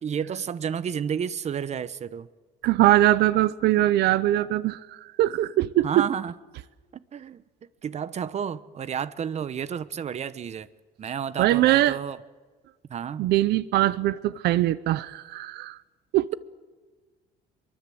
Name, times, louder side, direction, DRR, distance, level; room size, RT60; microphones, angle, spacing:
voice 1, 0.0-2.3 5.8-6.3 7.1-7.4 7.8-10.7 11.0-12.2 12.9-13.3, right 8 dB, 40° right, 1.0 m, -31 dB
voice 2, 2.6-6.1 11.4-12.0 13.2-15.8 16.1-16.3, right 15 dB, 80° right, 0.8 m, -22 dB
24.5 x 24.0 x 7.9 m
cardioid pair, 110°, 17 cm